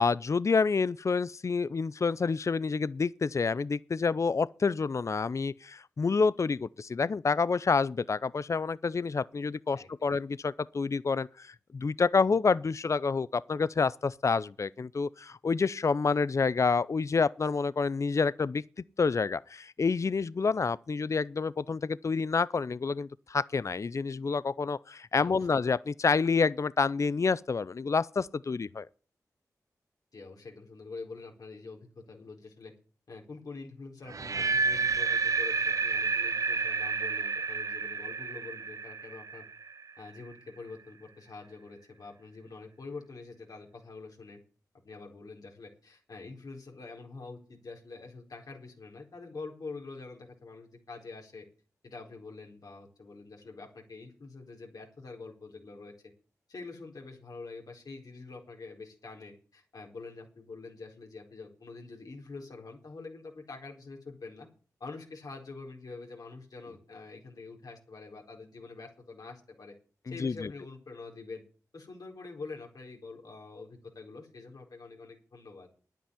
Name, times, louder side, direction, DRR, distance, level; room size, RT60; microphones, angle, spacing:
voice 1, 0.0-18.6 19.0-28.9 70.2-70.5, left 4 dB, 50° left, 0.5 m, -28 dB
voice 2, 9.7-10.1 25.2-25.4 30.1-32.7 33.1-39.4 40.0-44.4 44.8-51.5 51.8-55.9 56.5-64.5 64.8-69.7 70.1-71.4 71.7-75.7, left 3 dB, 70° left, 4.3 m, -46 dB
sound 1, 34.1-40.1, right 4 dB, 60° right, 0.6 m, -30 dB
10.5 x 9.1 x 9.9 m
cardioid pair, 50°, 7 cm